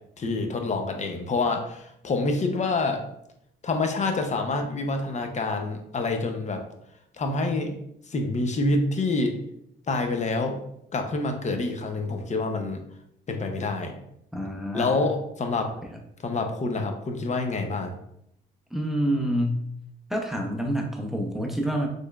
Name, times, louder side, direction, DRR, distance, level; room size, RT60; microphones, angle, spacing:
voice 1, 0.2-3.0 3.6-6.6 7.2-7.7 8.1-9.4 9.9-10.6 10.9-12.8 13.3-14.0 14.7-15.7 16.2-18.0, left 3 dB, 35° left, 4 dB, 0.7 m, -27 dB
voice 2, 14.3-15.0 18.7-19.6 20.1-21.9, equal, ahead, 1 dB, 0.6 m, -27 dB
4.2 x 3.2 x 2.3 m, 0.77 s
cardioid pair, 90°, 20 cm